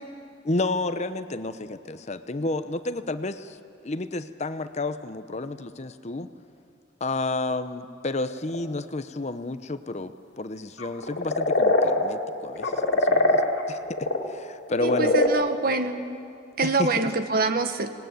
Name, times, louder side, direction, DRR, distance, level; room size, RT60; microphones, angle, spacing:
voice 1, 0.4-3.6 3.8-6.3 7.0-13.4 13.7-15.1 16.6-16.9, left 2 dB, 35° left, 11 dB, 0.8 m, -31 dB
sound 1, 8.3-8.6 10.8-12.1 12.6-14.2 14.7-15.3, left 2 dB, 65° left, 3.0 m, -22 dB
voice 2, 14.8-16.0 16.6-17.9, right 3 dB, 50° right, 9 dB, 1.4 m, -25 dB
26.0 x 19.0 x 9.2 m, 2.5 s
head